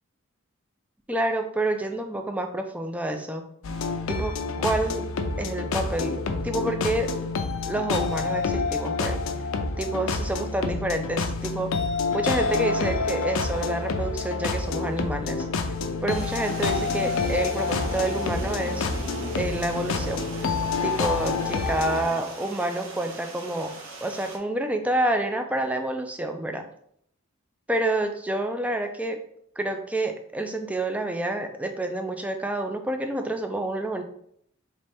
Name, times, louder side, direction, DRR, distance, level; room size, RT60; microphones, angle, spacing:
voice 1, 1.1-3.4 4.1-5.1 5.4-7.1 7.7-9.2 9.8-11.8 12.1-15.5 16.0-18.9 19.4-20.3 20.8-26.7 27.7-29.2 29.6-34.0, right 1 dB, 5° right, 5 dB, 0.3 m, -28 dB
sound 1, 3.6-22.0, left 4 dB, 75° left, 0.5 m, -28 dB
Stream, 16.1-24.4, right 3 dB, 75° right, 0.7 m, -42 dB
sound 2, 16.2-24.3, left 1 dB, 30° right, 1.8 m, -41 dB
4.0 x 3.1 x 3.5 m, 0.69 s
head